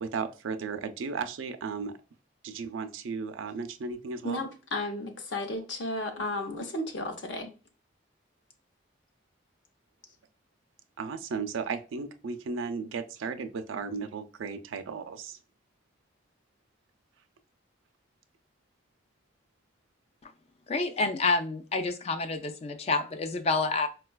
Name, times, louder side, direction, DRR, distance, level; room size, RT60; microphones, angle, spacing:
voice 1, 0.0-1.9 2.4-4.4 11.0-15.4, right 5 dB, 85° right, 0.4 m, -35 dB
voice 2, 4.2-7.5, left 1 dB, 70° left, 0.7 m, -33 dB
voice 3, 20.7-23.9, left 3 dB, 30° left, 0.3 m, -28 dB
4.5 x 2.3 x 2.2 m
head